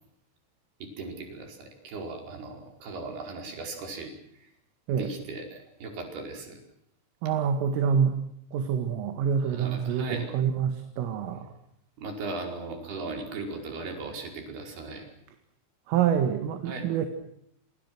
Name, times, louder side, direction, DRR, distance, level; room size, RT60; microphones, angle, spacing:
voice 1, 0.8-4.5 4.9-6.6 9.4-10.3 12.0-15.1 16.7-16.9, right 3 dB, 55° right, 3 dB, 7.0 m, -38 dB
voice 2, 7.2-8.2 8.5-11.5 15.9-17.1, right 7 dB, 80° right, 6 dB, 4.5 m, -26 dB
28.5 x 28.0 x 6.3 m, 0.71 s
omnidirectional pair, 5.8 m